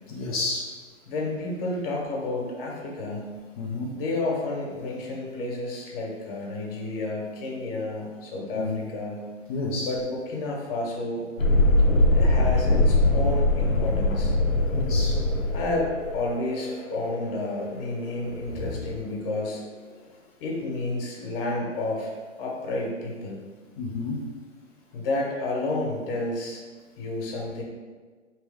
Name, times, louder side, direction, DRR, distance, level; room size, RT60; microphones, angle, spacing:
voice 1, 0.1-0.7 3.6-3.9 8.5-8.8 9.5-9.9 14.7-15.1 18.6-18.7 23.8-24.2, left 3 dB, 30° left, -6 dB, 0.5 m, -30 dB
voice 2, 1.1-3.3 3.9-9.2 9.8-11.3 12.1-14.3 15.5-19.6 20.4-22.1 22.4-23.4 24.9-26.6 27.0-27.6, left 2 dB, 45° left, -2 dB, 1.3 m, -30 dB
Thunderstorm, 11.4-18.8, left 2 dB, 85° left, 0.9 m, -22 dB
4.4 x 3.3 x 3.4 m, 1.4 s
hypercardioid pair, 140°, 38 cm